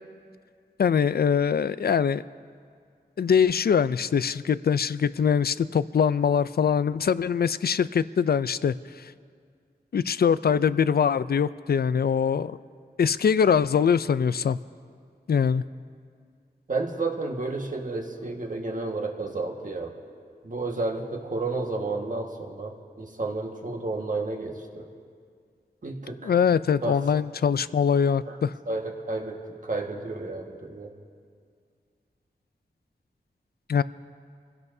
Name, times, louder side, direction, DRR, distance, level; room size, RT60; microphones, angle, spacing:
voice 1, 0.8-2.2 3.2-9.1 9.9-12.5 13.0-14.6 15.3-15.6 26.2-28.5 33.7-33.8, left 7 dB, 65° left, 16 dB, 0.4 m, -23 dB
voice 2, 16.7-20.0 20.4-24.9 25.8-26.3 26.8-27.0 28.2-28.4 28.7-30.9, right 3 dB, 50° right, 1 dB, 1.6 m, -31 dB
26.5 x 16.5 x 2.7 m, 2.1 s
wide cardioid pair, 80°, 17 cm